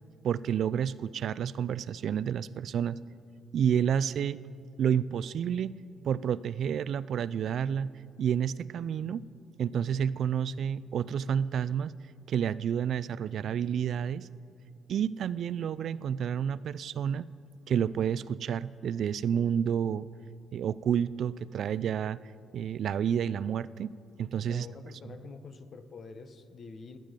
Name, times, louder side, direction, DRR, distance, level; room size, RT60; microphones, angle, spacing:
voice 1, 0.2-3.0 3.5-4.4 4.8-5.7 6.0-7.9 8.2-9.2 9.6-11.9 12.3-14.3 14.9-17.2 17.7-20.1 20.5-22.2 22.5-23.9 24.2-24.7, right 8 dB, 65° right, 18 dB, 0.4 m, -30 dB
voice 2, 24.5-27.0, left 4 dB, 50° left, 10 dB, 1.0 m, -46 dB
27.5 x 9.2 x 5.2 m, 2.4 s
cardioid pair, 90°, 0 cm